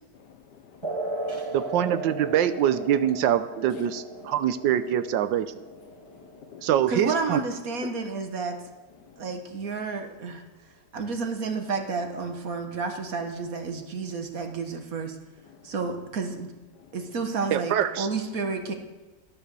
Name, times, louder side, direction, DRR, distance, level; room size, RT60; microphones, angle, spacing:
voice 1, 0.0-1.7 3.0-3.1 3.7-4.5 5.3-6.8 7.7-8.2 8.9-9.4 10.8-10.9 14.1-14.2 14.5-15.9 16.7-17.2, left 7 dB, 70° left, 9 dB, 1.5 m, -49 dB
sound 1, 0.8-7.9, right 2 dB, 20° right, 1.1 m, -37 dB
voice 2, 1.5-4.0 4.3-5.5 6.6-7.4 17.5-18.1, right 10 dB, 80° right, 12 dB, 1.4 m, -24 dB
voice 3, 6.9-8.6 9.2-10.4 10.9-15.2 15.6-16.5 16.9-18.7, right 4 dB, 50° right, 5 dB, 1.6 m, -31 dB
12.5 x 10.0 x 6.8 m, 1.2 s
omnidirectional pair, 2.0 m